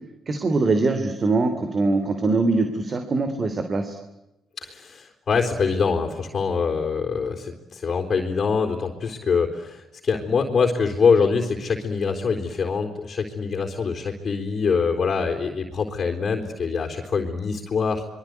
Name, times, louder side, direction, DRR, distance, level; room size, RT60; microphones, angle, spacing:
voice 1, 0.3-3.9, right 3 dB, 40° right, 7 dB, 3.3 m, -22 dB
voice 2, 4.6-18.0, left 5 dB, 45° left, 2 dB, 4.1 m, -24 dB
26.0 x 23.0 x 9.6 m, 0.97 s
cardioid pair, 90°, 0 cm